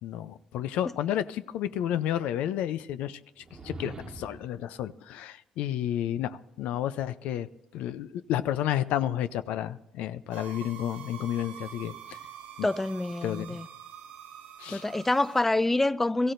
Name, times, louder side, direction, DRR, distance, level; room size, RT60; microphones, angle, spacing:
voice 1, 0.0-3.2 3.6-7.5 7.7-12.2 12.6-12.7 13.2-13.6 14.6-14.8, left 11 dB, 80° left, 0.5 m, -31 dB
sound 1, 3.4-4.6, right 1 dB, 35° right, 1.2 m, -42 dB
sound 2, 10.3-15.4, right 10 dB, 85° right, 2.0 m, -46 dB
voice 2, 12.6-13.7 14.7-16.3, left 2 dB, 10° left, 0.4 m, -26 dB
23.0 x 15.0 x 2.6 m
cardioid pair, 85°, 2 cm